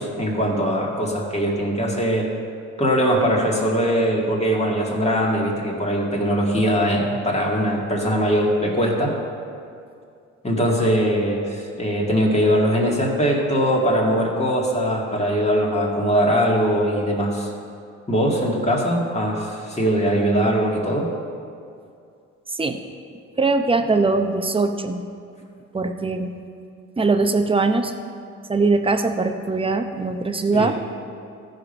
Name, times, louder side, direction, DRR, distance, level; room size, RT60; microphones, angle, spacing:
voice 1, 0.0-2.3 2.8-9.1 10.4-17.5 18.1-21.1 30.5-30.7, equal, 20° left, -2 dB, 2.0 m, -21 dB
voice 2, 23.4-25.0 25.7-26.3 27.0-27.9 28.5-30.7, right 3 dB, 20° right, 6 dB, 0.7 m, -21 dB
14.5 x 5.1 x 5.4 m, 2.4 s
cardioid pair, 90°, 30 cm